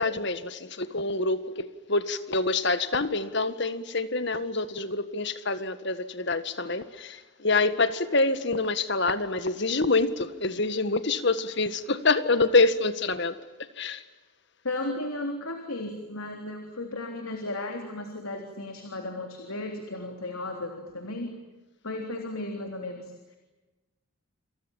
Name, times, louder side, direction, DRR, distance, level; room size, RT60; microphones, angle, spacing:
voice 1, 0.0-14.0, left 3 dB, 55° left, 12 dB, 1.8 m, -26 dB
voice 2, 14.6-21.3 21.8-23.4, left 2 dB, 75° left, 4 dB, 3.6 m, -35 dB
28.5 x 28.0 x 7.4 m, 1.1 s
head